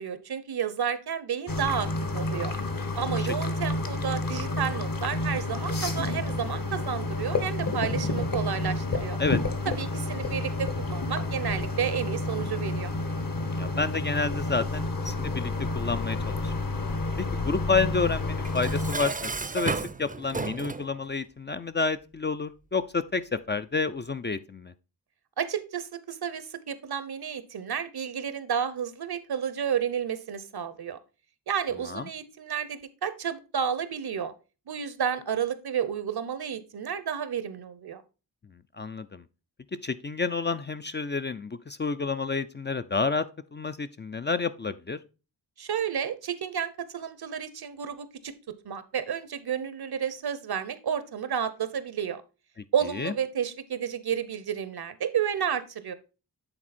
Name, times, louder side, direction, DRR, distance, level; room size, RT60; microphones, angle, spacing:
voice 1, 0.0-1.9 2.1-2.5 2.9-9.2 9.7-12.9 25.4-31.0 31.5-34.3 34.7-38.0 45.6-48.3 48.6-52.2 52.7-55.9, right 8 dB, 65° right, 0.8 m, -31 dB
sound 1, 1.5-18.9, left 2 dB, 55° left, 1.3 m, -30 dB
voice 2, 13.4-16.5 17.2-23.2 23.5-24.7 31.8-32.1 38.8-39.2 39.8-43.2 43.5-45.0 52.9-53.1, left 4 dB, 25° left, 0.4 m, -29 dB
Dishes pots and pans, 18.4-20.9, right 4 dB, 20° right, 0.6 m, -32 dB
8.9 x 3.7 x 4.2 m
cardioid pair, 60°, 41 cm